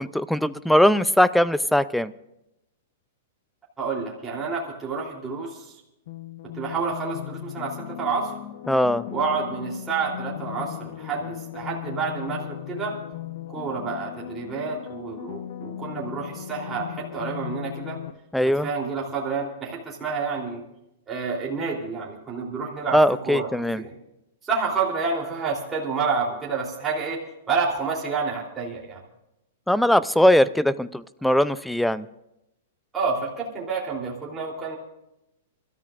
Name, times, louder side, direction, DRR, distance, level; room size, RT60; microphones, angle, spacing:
voice 1, 0.0-2.1 8.7-9.0 18.3-18.7 22.9-23.8 29.7-32.1, equal, ahead, 16 dB, 0.5 m, -20 dB
voice 2, 3.8-5.7 6.5-8.3 9.1-13.0 13.5-18.0 18.6-20.6 21.1-23.9 24.4-27.2 27.5-29.0 32.9-34.8, right 5 dB, 15° right, -4 dB, 3.3 m, -29 dB
sound 1, 6.1-18.1, left 11 dB, 60° left, 0.9 m, -37 dB
28.5 x 13.5 x 2.5 m, 0.86 s
hypercardioid pair, 145°, 0 cm